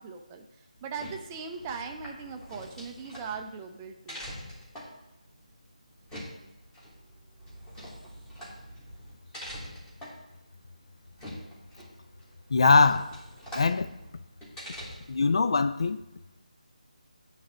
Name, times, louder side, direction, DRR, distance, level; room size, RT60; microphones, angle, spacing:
voice 1, 0.0-4.2, right 5 dB, 15° right, 0.5 m, -39 dB
sound 1, 0.8-15.3, equal, 10° left, 1.5 m, -45 dB
voice 2, 12.5-13.1 13.5-13.9 15.1-16.0, left 4 dB, 45° left, 0.3 m, -22 dB
9.2 x 3.4 x 6.1 m
figure-of-eight pair, 155°, 4 cm